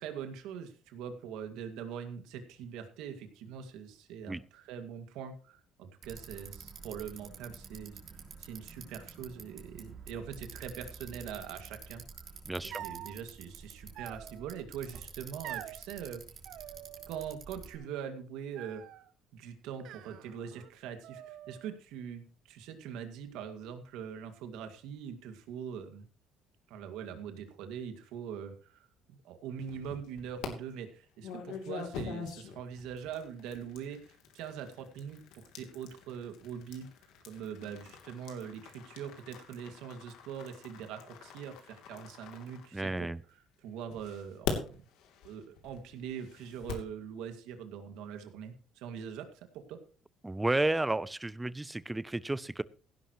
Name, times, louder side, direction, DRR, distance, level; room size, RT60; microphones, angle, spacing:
voice 1, 0.0-8.0 8.4-12.4 12.6-16.2 17.1-18.8 19.3-26.1 26.7-36.9 37.3-43.1 43.6-44.8 45.2-49.8, right 8 dB, 85° right, 6 dB, 2.1 m, -43 dB
Bicycle, 6.0-17.8, right 5 dB, 40° right, 3.4 m, -49 dB
voice 2, 12.4-12.8 42.7-43.2 50.2-52.6, right 2 dB, 10° right, 18 dB, 0.5 m, -32 dB
sound 1, 12.7-13.1 13.9-14.6 15.4-15.8 16.4-17.3 17.6-18.1 18.6-19.1 19.8-20.7 21.0-21.8, right 12 dB, 65° right, 0.8 m, -46 dB
sound 2, 29.6-30.5 31.2-43.2 43.9-46.9, left 7 dB, 80° left, 2.9 m, -44 dB
16.5 x 11.5 x 3.1 m, 0.38 s
cardioid pair, 130°, 0 cm